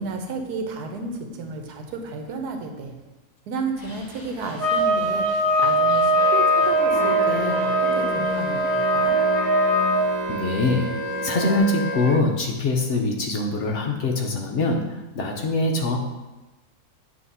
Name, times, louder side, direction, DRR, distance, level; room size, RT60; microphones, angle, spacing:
voice 1, 0.0-2.9 3.5-5.3 5.6-9.2, right 3 dB, 80° right, 4 dB, 1.3 m, -32 dB
sound 1, 3.8-11.6, left 2 dB, 15° left, 1.2 m, -34 dB
sound 2, 4.6-10.0, equal, 10° right, 1.8 m, -21 dB
Wind instrument woodwind instrument, 6.1-12.2, right 2 dB, 30° right, 1.4 m, -31 dB
voice 2, 10.3-10.9 11.2-16.0, left 2 dB, 60° left, 2 dB, 0.9 m, -23 dB
8.4 x 2.9 x 5.4 m, 1.1 s
omnidirectional pair, 1.6 m